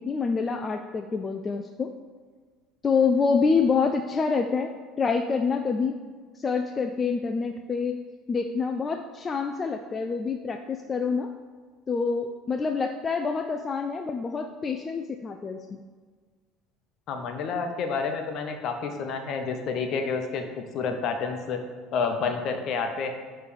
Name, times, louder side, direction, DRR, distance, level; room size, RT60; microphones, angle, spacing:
voice 1, 0.0-1.9 2.8-6.0 6.4-8.0 8.3-11.3 11.9-15.8, left 5 dB, 30° left, 5 dB, 0.3 m, -27 dB
voice 2, 17.1-20.4 20.7-21.6 21.9-23.1, left 5 dB, 55° left, 5 dB, 0.8 m, -29 dB
6.3 x 3.2 x 5.3 m, 1.5 s
supercardioid pair, 95°, 0 cm